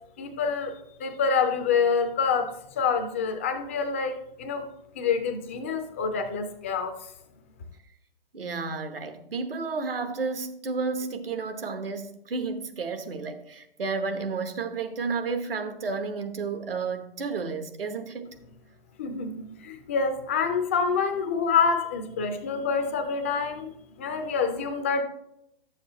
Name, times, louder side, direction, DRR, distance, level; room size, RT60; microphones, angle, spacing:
voice 1, 0.2-4.7 5.0-7.1 19.0-25.0, left 5 dB, 15° left, 0.3 m, -27 dB
voice 2, 8.3-18.3, right 4 dB, 70° right, 1.1 m, -32 dB
11.0 x 7.2 x 2.9 m
figure-of-eight pair, 125°, 29 cm